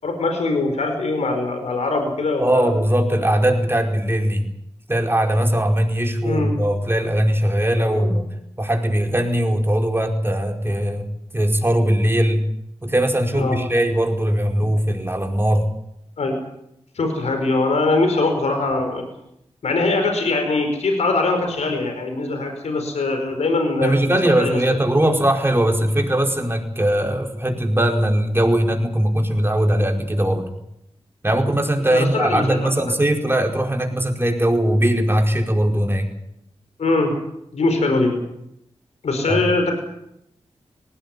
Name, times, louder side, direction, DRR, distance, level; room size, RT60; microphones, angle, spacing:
voice 1, 0.0-2.7 6.2-6.5 7.9-8.1 13.3-13.6 16.2-16.4 16.9-19.0 19.6-24.0 24.4-24.6 31.9-32.6 36.8-37.1 37.5-38.2 39.0-39.7, left 3 dB, 80° left, 5 dB, 4.9 m, -22 dB
voice 2, 2.4-4.5 4.9-8.3 8.6-11.1 11.3-12.4 12.8-15.7 23.8-30.5 31.2-36.1 39.3-39.4, right 1 dB, 20° right, 3 dB, 4.9 m, -20 dB
19.5 x 17.0 x 9.7 m, 0.79 s
cardioid pair, 45°, 11 cm